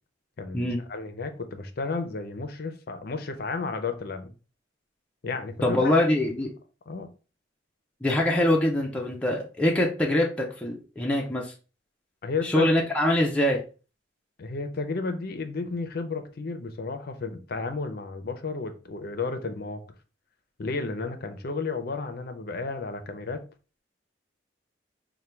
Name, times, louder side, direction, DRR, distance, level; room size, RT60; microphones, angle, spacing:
voice 1, 0.4-4.3 5.2-6.0 6.9-7.1 12.2-12.7 14.4-19.8 20.6-23.4, left 4 dB, 55° left, 0.5 m, -32 dB
voice 2, 5.6-6.5 8.0-11.5 12.4-13.6, left 1 dB, 5° left, 0.5 m, -24 dB
4.3 x 2.2 x 3.3 m
head